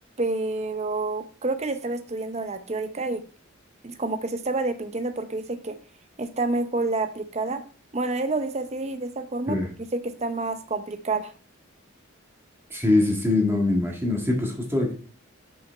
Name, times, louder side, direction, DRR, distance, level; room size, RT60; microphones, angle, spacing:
voice 1, 0.2-3.2 3.8-5.8 6.2-7.6 7.9-9.6 9.9-11.3, right 3 dB, 30° right, 9 dB, 0.7 m, -28 dB
voice 2, 12.7-14.9, left 2 dB, 10° right, 0 dB, 1.6 m, -23 dB
5.7 x 5.7 x 4.4 m, 0.41 s
head